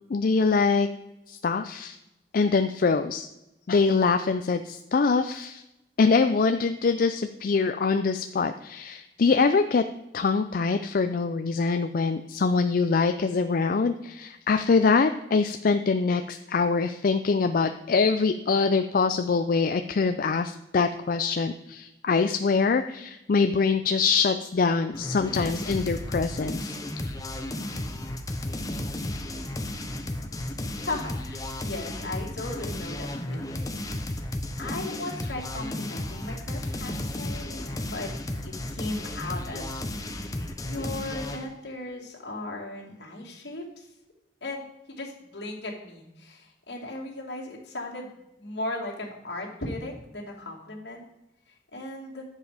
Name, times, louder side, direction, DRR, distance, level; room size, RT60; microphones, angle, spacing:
voice 1, 0.1-0.9 1.3-2.0 2.3-3.3 3.7-5.6 6.0-9.8 10.1-26.7, left 4 dB, 55° left, 8 dB, 0.4 m, -24 dB
sound 1, 24.9-41.5, left 1 dB, 20° left, 0.9 m, -33 dB
voice 2, 30.9-34.3 34.6-38.1 38.4-39.8 40.6-43.9 44.4-44.6 45.0-51.0 51.7-52.2, left 2 dB, 75° left, -2 dB, 2.5 m, -37 dB
10.5 x 7.3 x 5.0 m, 0.92 s
head